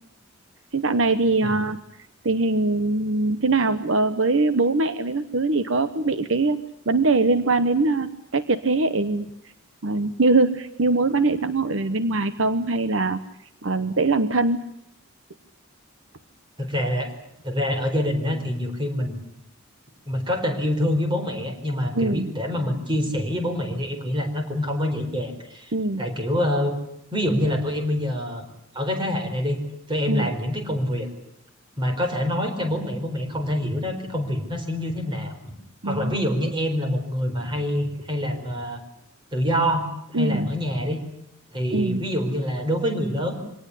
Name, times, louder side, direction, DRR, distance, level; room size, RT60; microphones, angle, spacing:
voice 1, 0.7-1.8 2.2-6.6 6.9-9.3 9.8-13.2 13.6-14.6 21.9-22.3 25.7-26.1 30.1-30.3 35.8-36.3 40.1-40.5 41.7-42.0, right 3 dB, 65° right, 12 dB, 1.0 m, -22 dB
voice 2, 16.6-17.1 17.4-19.3 20.1-26.8 27.1-28.4 28.7-29.6 29.9-31.1 31.8-35.3 35.8-38.8 39.3-41.0 41.5-43.3, equal, 25° right, 5 dB, 4.4 m, -26 dB
24.5 x 18.5 x 9.9 m, 0.78 s
head